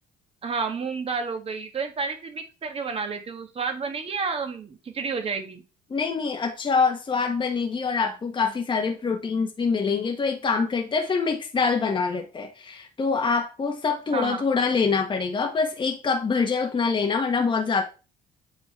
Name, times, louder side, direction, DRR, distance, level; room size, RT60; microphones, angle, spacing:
voice 1, 0.4-5.6 14.1-14.4, right 5 dB, 35° right, 1.8 m, -30 dB
voice 2, 5.9-17.8, left 5 dB, 30° left, 1.5 m, -25 dB
8.7 x 4.3 x 4.4 m
cardioid pair, 110°, 17 cm